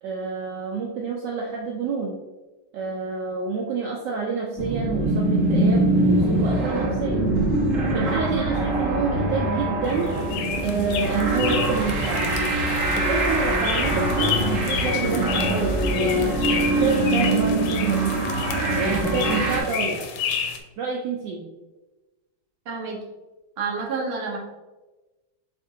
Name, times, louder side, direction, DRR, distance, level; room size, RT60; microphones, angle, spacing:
voice 1, 0.0-2.2 2.7-7.3 7.9-10.1 10.6-12.3 12.9-18.2 18.8-20.0 20.8-21.4, right 4 dB, 75° right, -1 dB, 1.0 m, -28 dB
sound 1, 4.6-19.6, right 1 dB, 30° right, 1.4 m, -23 dB
sound 2, 9.9-20.6, left 7 dB, 75° left, 1.3 m, -31 dB
voice 2, 22.7-23.0 23.6-24.4, right 4 dB, 60° right, -2 dB, 0.6 m, -28 dB
7.5 x 2.5 x 2.7 m, 1.2 s
omnidirectional pair, 2.4 m